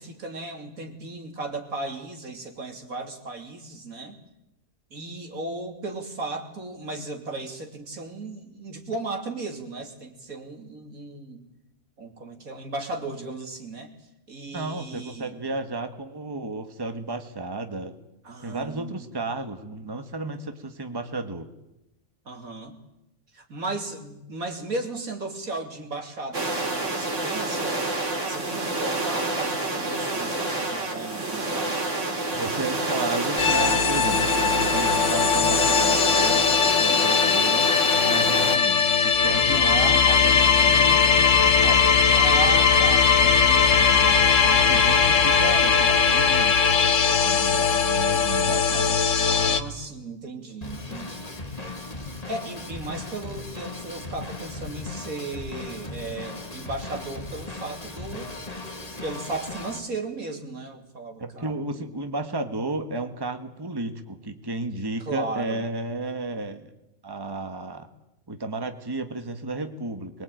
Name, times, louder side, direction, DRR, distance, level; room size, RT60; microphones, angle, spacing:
voice 1, 0.0-4.2 4.9-11.4 12.0-13.9 14.3-15.3 18.2-19.1 22.3-22.8 23.3-31.8 39.5-40.0 41.9-45.0 46.9-47.2 49.3-51.5 52.0-58.3 59.0-61.9 65.1-65.7, right 2 dB, 85° right, 4 dB, 3.4 m, -36 dB
voice 2, 14.5-17.9 18.4-21.5 32.3-41.9 44.7-46.6 47.2-49.0 61.2-66.7 67.0-67.9 68.3-70.2, right 2 dB, 15° right, 8 dB, 1.5 m, -33 dB
sound 1, 26.3-38.6, right 2 dB, 60° right, 3.5 m, -28 dB
sound 2, 33.4-49.6, left 6 dB, 65° left, 1.6 m, -20 dB
Drum kit / Drum, 50.6-59.8, left 2 dB, 25° left, 2.4 m, -37 dB
23.5 x 21.5 x 9.2 m, 0.93 s
omnidirectional pair, 1.4 m